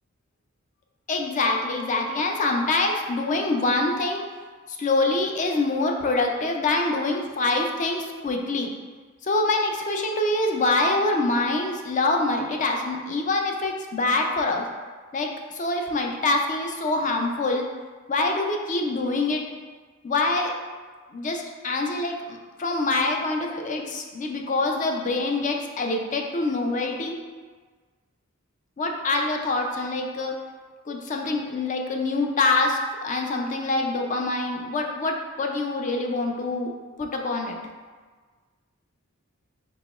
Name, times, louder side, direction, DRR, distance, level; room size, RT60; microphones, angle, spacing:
voice 1, 1.1-4.2 4.7-8.7 9.2-14.7 15.1-17.7 18.1-19.4 20.0-20.5 21.1-27.2 28.8-30.4 30.9-36.7 37.0-37.6, left 2 dB, 35° left, 2 dB, 0.4 m, -25 dB
4.8 x 3.6 x 2.4 m, 1.4 s
head